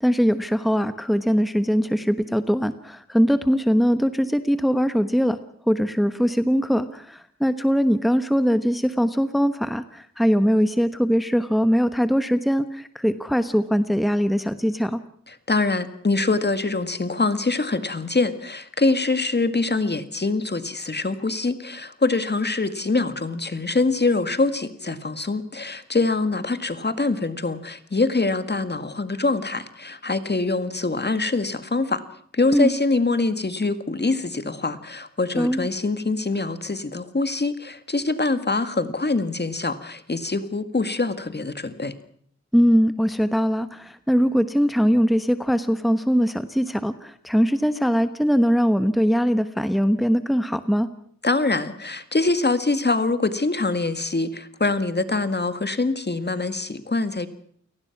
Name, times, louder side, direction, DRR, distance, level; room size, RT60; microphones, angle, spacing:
voice 1, 0.0-5.4 5.7-15.0 32.5-32.7 35.3-35.7 42.5-50.9, equal, ahead, 11 dB, 1.1 m, -21 dB
voice 2, 15.5-32.0 32.3-41.9 51.2-57.3, left 3 dB, 35° left, 11 dB, 1.9 m, -24 dB
29.0 x 18.5 x 6.0 m, 0.62 s
wide cardioid pair, 85°, 29 cm